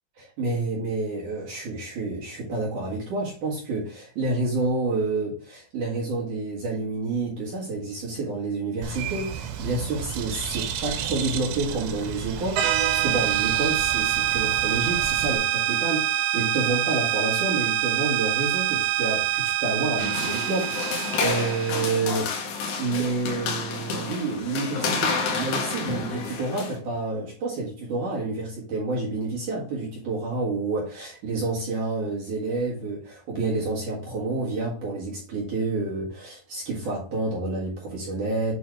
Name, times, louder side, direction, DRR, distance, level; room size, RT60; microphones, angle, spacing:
voice 1, 0.2-22.3 22.8-25.0 25.3-38.5, right 3 dB, 55° right, 2.5 m, -29 dB
Bird, 8.8-15.4, right 8 dB, 90° right, 3.5 m, -33 dB
sound 1, 12.6-21.9, right 11 dB, 70° right, 2.8 m, -25 dB
sound 2, 20.0-26.8, left 4 dB, 70° left, 3.0 m, -29 dB
8.8 x 3.4 x 4.7 m
omnidirectional pair, 5.5 m